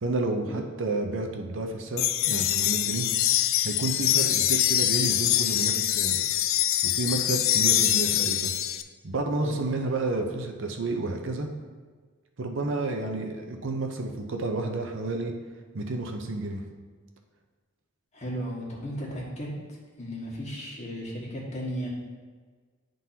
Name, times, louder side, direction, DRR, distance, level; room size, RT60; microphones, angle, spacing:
voice 1, 0.0-3.1 3.6-6.2 6.8-8.5 9.0-11.5 12.4-15.3 15.7-16.6, right 2 dB, 65° right, 3 dB, 0.7 m, -30 dB
sound 1, 2.0-8.8, left 12 dB, 70° left, 0.4 m, -24 dB
voice 2, 18.1-19.5 20.0-21.9, equal, 35° left, -4 dB, 1.7 m, -35 dB
10.5 x 3.8 x 2.8 m, 1.5 s
head